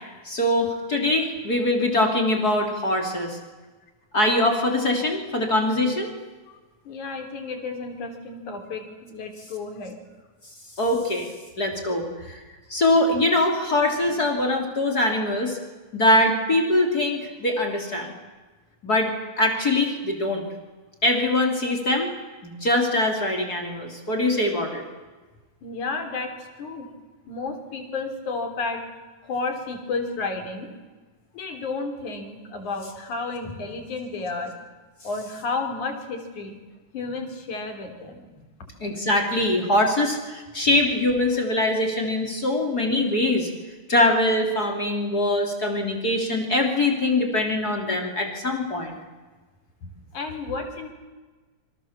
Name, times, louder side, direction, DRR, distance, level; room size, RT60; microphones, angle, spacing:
voice 1, 0.3-3.4 4.1-6.1 10.8-11.3 11.6-12.4 12.7-15.6 15.9-18.1 18.8-19.1 19.4-20.4 21.0-22.1 22.4-24.8 38.8-43.5 43.9-49.0, left 1 dB, 30° left, 2 dB, 3.5 m, -23 dB
voice 2, 6.8-10.0 25.6-26.9 27.3-28.8 29.2-30.7 31.3-34.5 35.0-36.6 36.9-38.3 49.8-50.9, left 3 dB, 75° left, 5 dB, 4.9 m, -32 dB
27.5 x 25.5 x 7.4 m, 1.3 s
omnidirectional pair, 3.5 m